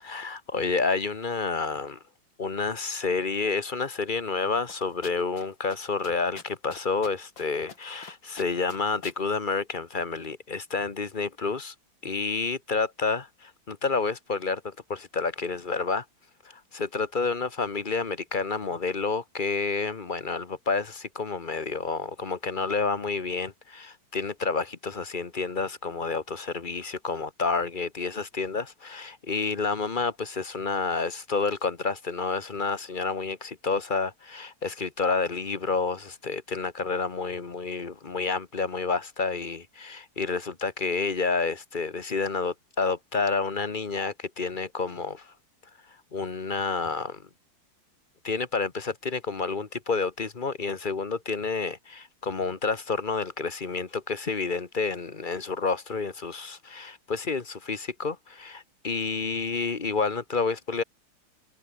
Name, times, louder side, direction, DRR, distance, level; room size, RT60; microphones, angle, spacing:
voice 1, 0.0-2.0 2.4-11.7 12.0-16.0 16.4-45.3 46.1-47.2 48.2-60.8, left 4 dB, 30° left, 1.2 m, -29 dB
sound 1, 4.7-5.4 5.7-5.8 6.0-7.4 7.7-8.1 8.4-9.2, left 5 dB, 70° left, 3.6 m, -43 dB
omnidirectional pair, 2.2 m